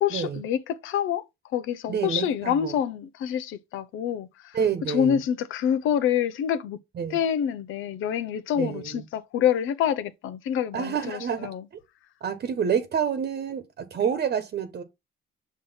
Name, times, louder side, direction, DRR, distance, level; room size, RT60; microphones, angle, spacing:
voice 1, 0.0-1.2 1.5-4.6 4.9-6.8 7.1-11.6, left 9 dB, 85° left, 0.8 m, -27 dB
voice 2, 1.9-2.7 4.5-5.2 7.0-7.2 8.6-9.0 10.7-11.5 12.2-14.8, right 7 dB, 55° right, 1.1 m, -28 dB
6.0 x 3.1 x 5.5 m
cardioid pair, 90°, 20 cm